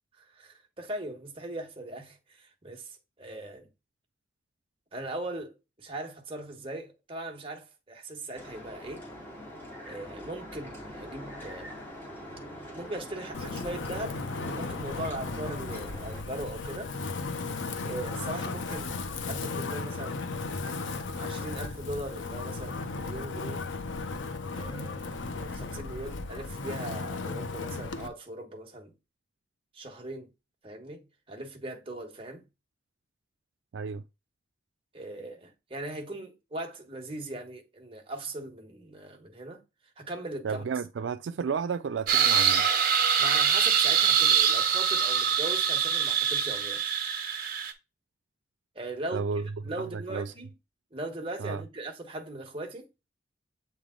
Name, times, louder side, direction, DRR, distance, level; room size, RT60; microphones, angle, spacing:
voice 1, 0.2-3.7 4.9-9.0 9.8-11.7 12.7-14.2 14.5-16.9 17.8-19.0 19.3-20.2 20.9-23.7 24.4-28.9 29.7-30.3 30.6-32.4 34.9-39.6 40.0-40.7 43.2-46.8 48.7-50.5 50.9-52.9, right 1 dB, 30° right, 1.4 m, -39 dB
sound 1, 8.3-16.2, equal, 10° left, 2.0 m, -44 dB
Wind, 13.3-28.1, left 3 dB, 80° left, 0.7 m, -35 dB
voice 2, 33.7-34.0 40.4-42.7 49.1-49.4 49.8-50.3 51.4-51.6, right 5 dB, 75° right, 0.4 m, -32 dB
sound 2, 42.1-47.7, right 8 dB, 45° right, 1.0 m, -24 dB
7.9 x 3.3 x 3.7 m
head